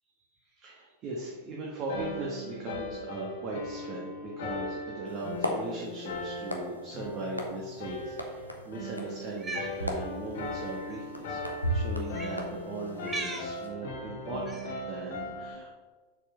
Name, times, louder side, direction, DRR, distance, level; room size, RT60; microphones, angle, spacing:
voice 1, 0.4-11.4 11.7-15.7, right 2 dB, 35° right, -4 dB, 1.6 m, -38 dB
sound 1, 1.9-15.6, left 2 dB, 55° left, 1.6 m, -39 dB
sound 2, 5.1-13.7, equal, 85° left, 1.0 m, -37 dB
Cat, 9.3-9.7 10.8-11.0 12.1-12.4 13.0-13.5 14.5-14.8, right 3 dB, 15° right, 1.2 m, -37 dB
7.2 x 4.9 x 5.6 m, 1.3 s
figure-of-eight pair, 90°, 0 cm